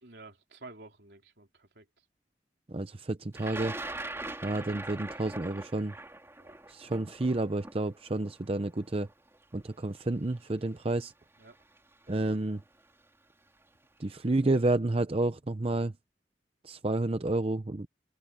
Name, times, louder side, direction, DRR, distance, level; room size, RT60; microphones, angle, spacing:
voice 1, 0.0-2.0 6.4-6.6 6.8-6.9 11.4-11.6, right 3 dB, 70° right, 3.2 m, -51 dB
voice 2, 2.7-3.8 4.4-5.9 6.7-9.1 9.5-11.1 12.1-12.6 14.0-15.9 16.6-17.9, right 2 dB, 35° right, 0.7 m, -30 dB
Thunder, 3.4-9.4 10.3-10.4 11.5-11.8 12.1-12.6, right 2 dB, 15° right, 3.0 m, -41 dB
open air
head